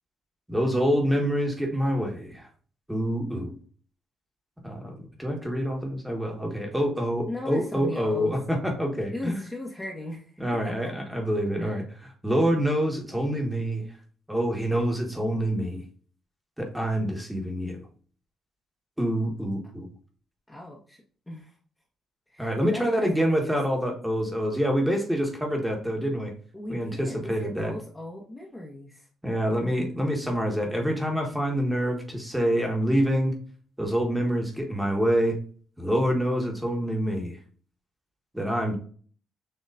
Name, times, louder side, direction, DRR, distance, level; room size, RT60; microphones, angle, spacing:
voice 1, 0.5-2.5 2.9-3.6 4.6-9.4 10.4-13.8 14.3-15.8 16.6-17.8 19.0-19.9 22.4-26.3 26.7-27.7 29.2-33.4 33.8-35.4 35.8-37.4 38.3-38.7, equal, 5° right, 1 dB, 1.4 m, -26 dB
voice 2, 7.3-8.3 9.1-10.9 11.6-11.8 20.5-21.5 22.3-23.6 26.5-29.1, left 1 dB, 15° left, -3 dB, 1.2 m, -38 dB
6.7 x 2.9 x 2.5 m, 0.43 s
cardioid pair, 90°, 0 cm